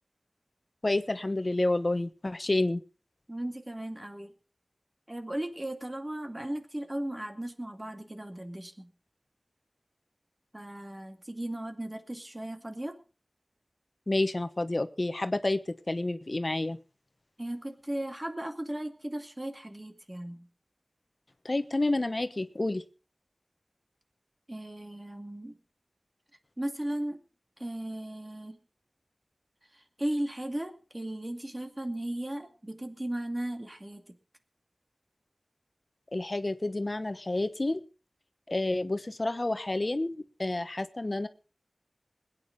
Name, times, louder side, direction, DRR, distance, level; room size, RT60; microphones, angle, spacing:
voice 1, 0.8-2.8 14.1-16.8 21.4-22.8 36.1-37.8 38.5-41.3, left 2 dB, 50° left, 10 dB, 1.1 m, -29 dB
voice 2, 3.3-4.3 5.1-8.9 10.5-13.0 17.4-20.5 24.5-25.6 26.6-27.2 27.6-28.6 29.7-34.0, right 1 dB, 25° right, 6 dB, 2.3 m, -36 dB
21.0 x 9.4 x 5.2 m, 0.35 s
wide cardioid pair, 50°, 0 cm